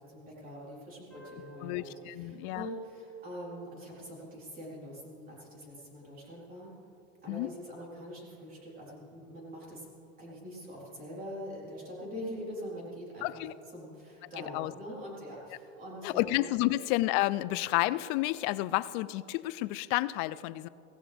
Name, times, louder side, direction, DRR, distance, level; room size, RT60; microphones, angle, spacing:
voice 1, 0.0-6.7 7.2-9.9 10.2-13.4 13.7-16.3 16.6-16.8, equal, 30° right, -5 dB, 4.0 m, -43 dB
sound 1, 1.1-4.2, right 1 dB, 5° left, 2.8 m, -57 dB
voice 2, 1.6-2.7 7.3-7.5 13.2-13.5 14.5-14.7 16.0-20.7, left 18 dB, 55° left, 18 dB, 0.4 m, -30 dB
16.5 x 16.5 x 3.5 m, 2.9 s
supercardioid pair, 145°, 31 cm